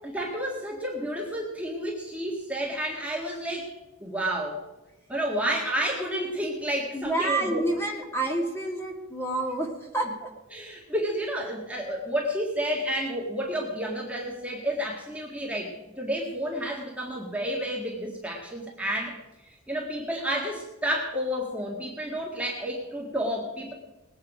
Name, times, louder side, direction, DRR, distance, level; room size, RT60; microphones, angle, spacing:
voice 1, 0.0-3.8 4.0-4.6 5.1-7.6 10.5-19.2 19.4-23.7, equal, 5° right, -2 dB, 1.8 m, -30 dB
voice 2, 6.9-10.3, right 2 dB, 10° left, 0 dB, 2.0 m, -29 dB
20.5 x 8.8 x 5.0 m, 1.0 s
head